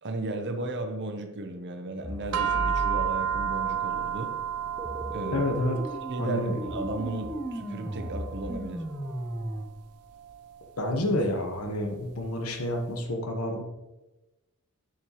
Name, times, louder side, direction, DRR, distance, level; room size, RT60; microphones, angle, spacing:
voice 1, 0.0-4.4 5.1-5.5 6.1-8.8, right 2 dB, 50° right, 6 dB, 0.8 m, -35 dB
sound 1, 2.0-9.7, equal, ahead, 0.6 m, -37 dB
sound 2, 2.3-12.8, right 9 dB, 85° right, 0.5 m, -34 dB
voice 2, 5.3-6.6 10.8-13.6, left 1 dB, 80° left, 3 dB, 1.2 m, -29 dB
7.0 x 6.3 x 3.1 m, 1.0 s
head